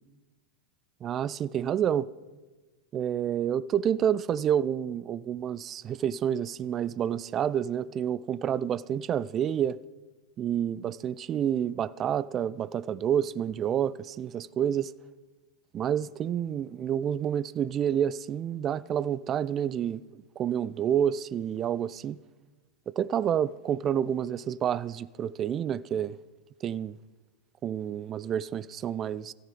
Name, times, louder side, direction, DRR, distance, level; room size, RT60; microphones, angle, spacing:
voice 1, 1.0-2.1 2.9-9.8 10.4-14.9 15.7-22.2 22.9-26.2 26.6-27.0 27.6-29.3, right 9 dB, 30° right, 0.3 m, -29 dB
13.5 x 11.5 x 5.3 m
figure-of-eight pair, 90°, 0 cm